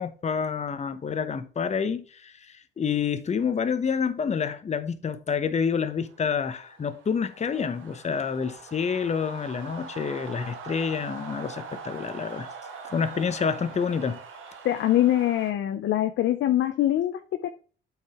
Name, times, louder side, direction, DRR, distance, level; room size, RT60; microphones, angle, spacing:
voice 1, 0.0-12.5 12.9-14.2, left 6 dB, 35° left, 0.8 m, -28 dB
sound 1, 5.6-15.5, right 5 dB, 85° right, 1.8 m, -43 dB
voice 2, 14.6-17.5, left 13 dB, 70° left, 0.6 m, -23 dB
8.1 x 4.9 x 3.0 m
cardioid pair, 90°, 20 cm